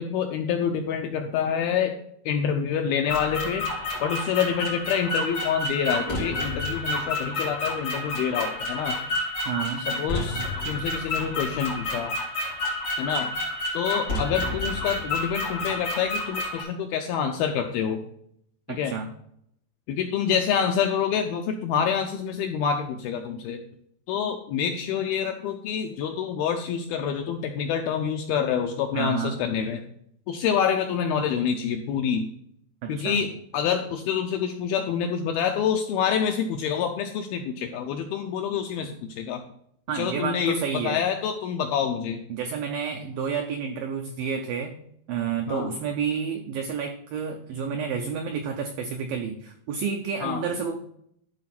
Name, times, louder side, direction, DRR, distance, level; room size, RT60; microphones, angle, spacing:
voice 1, 0.0-1.9 2.3-3.6 4.0-9.0 9.9-12.1 13.0-13.3 13.7-18.0 18.7-19.0 19.9-23.6 24.1-29.8 30.3-32.3 32.9-39.4 39.9-42.2 45.5-45.7 50.2-50.4, left 7 dB, 85° left, 4 dB, 2.2 m, -27 dB
sound 1, 3.1-16.6, left 2 dB, 40° left, 3.2 m, -30 dB
voice 2, 9.5-9.9 18.7-19.1 28.9-29.4 32.8-33.2 39.9-41.0 42.3-44.7 45.1-50.8, right 6 dB, 90° right, 5 dB, 2.0 m, -30 dB
12.0 x 4.1 x 5.8 m, 0.71 s
omnidirectional pair, 5.0 m